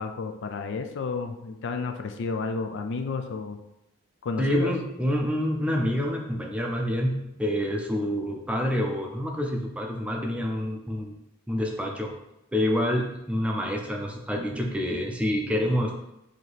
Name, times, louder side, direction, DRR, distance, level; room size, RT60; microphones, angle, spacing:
voice 1, 0.0-3.6 4.2-4.7, left 4 dB, 60° left, 6 dB, 0.4 m, -31 dB
voice 2, 4.4-11.2 11.5-12.1 12.5-15.9, equal, 5° right, 1 dB, 0.5 m, -27 dB
4.7 x 2.8 x 4.0 m, 0.88 s
head